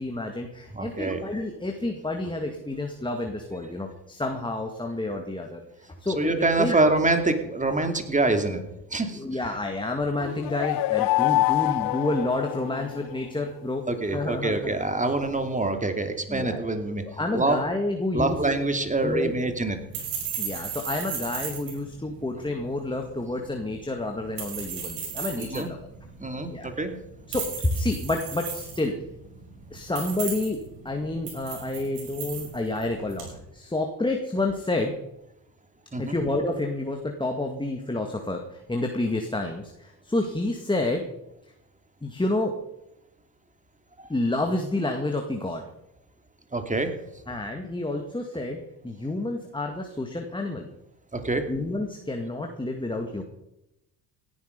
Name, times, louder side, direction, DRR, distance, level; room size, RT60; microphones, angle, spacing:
voice 1, 0.0-5.6 6.0-6.9 9.1-13.8 14.1-14.8 16.3-16.7 17.0-18.4 19.0-19.3 20.4-25.8 26.4-26.8 27.3-28.9 29.7-33.3 33.5-34.9 36.0-41.1 42.0-42.5 44.1-45.6 47.3-50.7 51.5-53.2, left 2 dB, 10° left, 3 dB, 2.1 m, -29 dB
voice 2, 0.7-1.2 6.2-8.6 8.9-9.2 13.9-17.1 17.3-17.6 18.1-19.8 25.4-25.7 26.2-26.9 35.9-36.2 44.0-44.1 46.5-46.9 51.1-51.5, right 2 dB, 15° right, 7 dB, 2.7 m, -25 dB
sound 1, 10.2-13.1, left 19 dB, 50° left, 0.6 m, -25 dB
sound 2, 18.3-33.4, right 7 dB, 70° right, 5.7 m, -37 dB
17.5 x 11.0 x 5.3 m, 0.88 s
hypercardioid pair, 65°, 48 cm